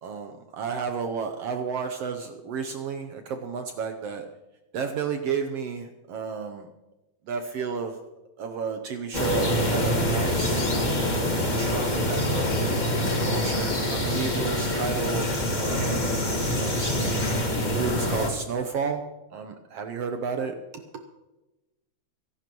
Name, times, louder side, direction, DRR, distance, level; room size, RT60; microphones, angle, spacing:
voice 1, 0.0-4.2 4.7-6.7 7.3-8.0 8.4-11.1 11.5-17.3 17.7-19.0 19.3-20.8, right 6 dB, 70° right, 6 dB, 1.5 m, -32 dB
sound 1, 9.1-18.3, left 1 dB, 30° left, 0.8 m, -25 dB
23.5 x 11.5 x 3.0 m, 1.0 s
omnidirectional pair, 3.5 m